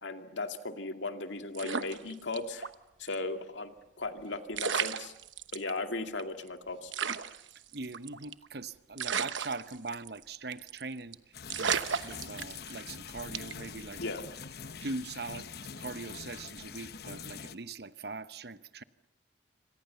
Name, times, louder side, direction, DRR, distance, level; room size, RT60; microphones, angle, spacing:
voice 1, 0.0-2.7 3.0-3.7 4.0-5.1 5.5-6.9 14.0-14.2, left 3 dB, 75° left, 2.3 m, -37 dB
sound 1, 1.5-2.7 3.1-3.2 4.2-4.3 4.5-5.7 6.2-6.3 6.5-6.6 6.9-8.5 9.0-10.2 10.5-10.8 11.1-11.2 11.5-12.9 13.3-13.7, right 7 dB, 85° right, 1.1 m, -34 dB
voice 2, 7.7-14.0 14.8-15.4 15.8-18.8, right 3 dB, 55° right, 1.0 m, -41 dB
sound 2, 11.3-17.6, left 6 dB, 55° left, 1.0 m, -44 dB
27.5 x 26.0 x 7.0 m
head